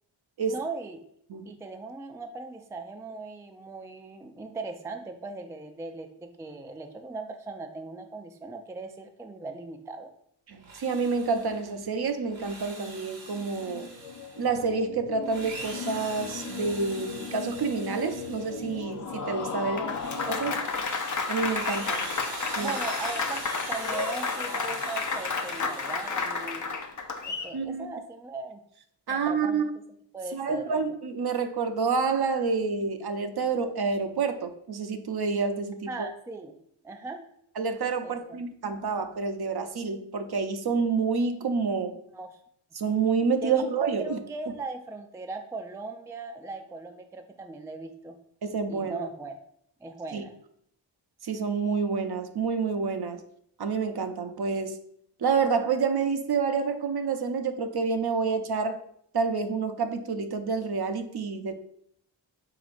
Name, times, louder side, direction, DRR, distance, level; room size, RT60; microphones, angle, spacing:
voice 1, 0.5-1.0 1.5-10.1 19.6-20.0 22.6-26.7 27.2-28.6 29.1-29.7 30.1-30.9 35.9-36.5 36.8-37.2 38.0-38.4 42.1-42.3 43.4-48.2 48.7-49.4 49.8-50.4, right 3 dB, 5° right, 6 dB, 0.4 m, -39 dB
voice 2, 10.5-13.9 14.4-19.8 20.3-20.6 21.3-22.1 22.6-22.8 27.5-27.9 29.1-29.7 30.3-35.9 37.6-42.0 42.8-44.2 48.4-49.0 50.1-50.2 51.2-53.2 53.6-54.8 55.2-58.8 59.1-61.5, right 5 dB, 55° right, 7 dB, 0.6 m, -28 dB
Drill, 10.5-11.7 12.2-14.6 15.2-18.9 19.4-26.8, right 3 dB, 75° right, 1.2 m, -42 dB
sound 1, 13.3-20.6, left 6 dB, 85° left, 0.6 m, -40 dB
Applause, 18.8-27.5, left 4 dB, 40° left, 0.6 m, -31 dB
4.9 x 3.9 x 2.5 m, 0.67 s
wide cardioid pair, 65°, 46 cm